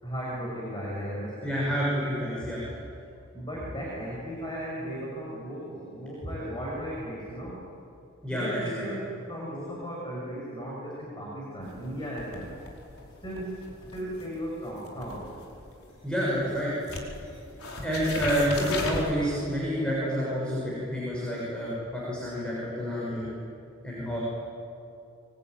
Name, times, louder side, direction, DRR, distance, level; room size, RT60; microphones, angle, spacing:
voice 1, 0.0-1.7 3.3-7.6 8.3-12.5 13.2-15.3 16.4-16.5, equal, 20° left, -3 dB, 6.1 m, -36 dB
voice 2, 1.4-2.6 8.2-8.9 16.0-16.7 17.8-23.3 23.8-24.2, equal, 5° left, -6 dB, 6.8 m, -29 dB
sound 1, 11.6-16.6 16.8-19.1, left 2 dB, 75° left, 4.9 m, -38 dB
25.5 x 23.5 x 9.3 m, 2.7 s
head